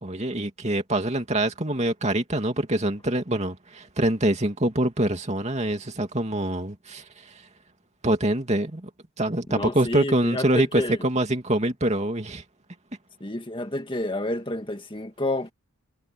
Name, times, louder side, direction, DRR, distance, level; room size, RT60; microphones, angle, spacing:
voice 1, 0.0-7.3 8.0-8.9 9.2-12.4, right 1 dB, 30° right, 2.6 m, -25 dB
voice 2, 9.5-11.0 13.2-15.5, left 1 dB, 20° left, 1.8 m, -29 dB
head